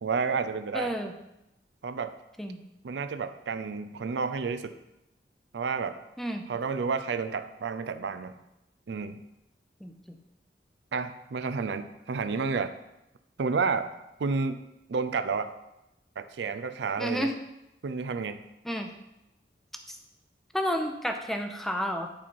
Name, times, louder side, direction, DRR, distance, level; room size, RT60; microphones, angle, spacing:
voice 1, 0.0-1.0 1.8-2.2 2.8-4.8 5.5-6.0 6.5-8.4 8.9-9.2 10.9-12.7 13.4-13.9 14.2-14.6 14.9-15.5 16.2-17.4 17.8-18.5, right 5 dB, 80° right, 10 dB, 0.5 m, -30 dB
voice 2, 0.7-1.1 2.4-2.6 6.2-6.4 9.8-9.9 17.0-17.3 18.6-18.9 20.5-22.1, equal, ahead, 5 dB, 0.5 m, -30 dB
8.5 x 4.2 x 4.6 m, 0.90 s
head